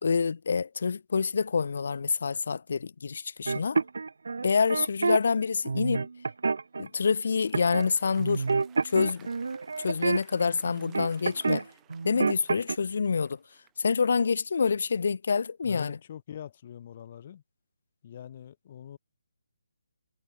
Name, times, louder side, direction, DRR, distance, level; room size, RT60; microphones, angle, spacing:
voice 1, 0.0-3.8 4.4-6.1 6.8-8.5 8.8-9.3 9.8-11.7 12.0-13.4 13.8-16.0, left 5 dB, 60° left, 0.6 m, -27 dB
sound 1, 3.5-5.2 5.6-6.9 7.5-7.9 8.2-11.6 11.9-12.8, right 4 dB, 70° right, 1.1 m, -28 dB
Applause, 6.6-14.3, right 15 dB, 15° right, 5.4 m, -60 dB
voice 2, 15.6-17.4 18.0-19.0, left 9 dB, 40° left, 2.5 m, -43 dB
figure-of-eight pair, 150°, 0 cm